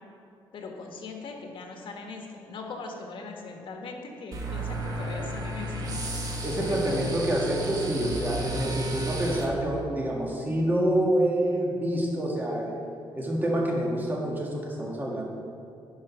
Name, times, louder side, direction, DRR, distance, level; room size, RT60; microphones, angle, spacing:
voice 1, 0.5-6.0 6.6-7.1, left 4 dB, 65° left, 2 dB, 1.4 m, -40 dB
sound 1, 4.3-9.5, right 1 dB, 40° right, 1.2 m, -33 dB
voice 2, 6.4-12.7 13.1-15.2, right 1 dB, 20° right, -2 dB, 1.8 m, -27 dB
10.5 x 5.1 x 5.9 m, 2.6 s
cardioid pair, 115°, 9 cm